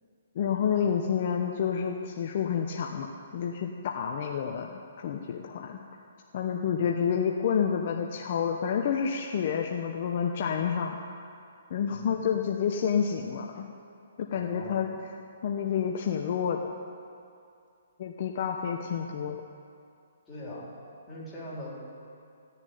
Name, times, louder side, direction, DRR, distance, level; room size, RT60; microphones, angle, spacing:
voice 1, 0.3-3.1 3.3-5.8 6.3-11.0 11.7-13.7 14.2-14.9 15.4-16.7 18.0-19.4, left 7 dB, 50° left, 2 dB, 0.9 m, -29 dB
voice 2, 11.9-12.2 14.3-15.0 20.3-20.7 21.1-21.7, left 1 dB, 10° left, -8 dB, 4.0 m, -41 dB
15.5 x 7.0 x 9.5 m, 2.5 s
hypercardioid pair, 155°, 0 cm